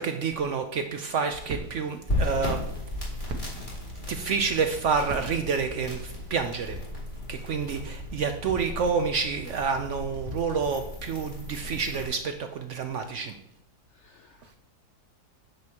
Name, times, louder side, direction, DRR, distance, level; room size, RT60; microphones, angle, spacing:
voice 1, 0.0-2.7 4.1-6.8 7.3-13.3, right 5 dB, 65° right, 6 dB, 0.7 m, -28 dB
sound 1, 1.3-6.7, right 3 dB, 90° right, 1.6 m, -43 dB
sound 2, 2.1-12.1, left 1 dB, 30° left, 2.5 m, -35 dB
voice 2, 12.9-13.2 13.9-14.6, left 4 dB, 75° left, 6 dB, 0.6 m, -59 dB
9.4 x 7.0 x 2.9 m, 0.83 s
omnidirectional pair, 1.7 m